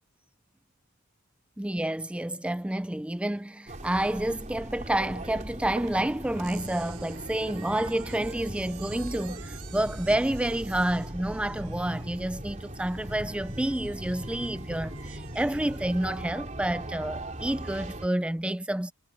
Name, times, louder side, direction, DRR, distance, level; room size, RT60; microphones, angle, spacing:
voice 1, 1.6-18.9, right 1 dB, 5° right, 0.3 m, -29 dB
sound 1, 3.7-18.1, right 1 dB, 35° right, 4.0 m, -39 dB
sound 2, 6.4-16.4, right 8 dB, 85° right, 6.8 m, -50 dB
head